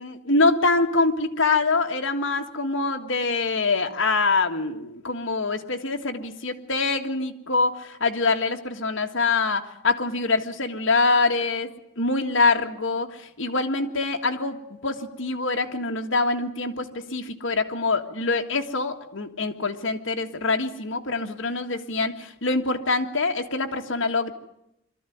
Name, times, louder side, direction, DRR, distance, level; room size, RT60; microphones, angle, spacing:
voice 1, 0.0-24.3, left 3 dB, 65° left, 3 dB, 1.8 m, -25 dB
23.5 x 13.5 x 9.3 m, 0.82 s
head